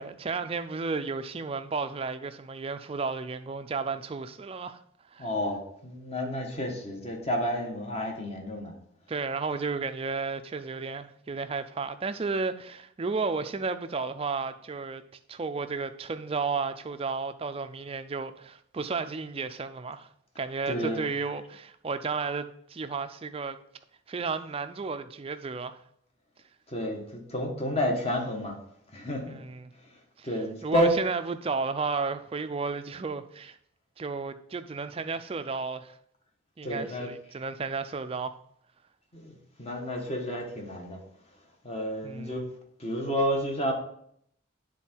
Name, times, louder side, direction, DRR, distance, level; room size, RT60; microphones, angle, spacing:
voice 1, 0.0-4.8 5.1-5.3 9.1-15.0 15.3-20.1 20.4-23.6 24.1-25.8 29.2-29.7 30.2-30.3 30.6-33.6 34.0-36.0 36.6-38.3 42.0-42.5, right 4 dB, 25° right, 0.4 m, -33 dB
voice 2, 5.2-8.7 20.7-21.1 26.7-28.5 28.9-29.4 30.2-30.9 36.6-37.1 39.1-39.3 39.6-41.0 41.6-42.4 42.8-43.7, equal, 30° left, 1.3 m, -30 dB
9.2 x 3.8 x 4.4 m
head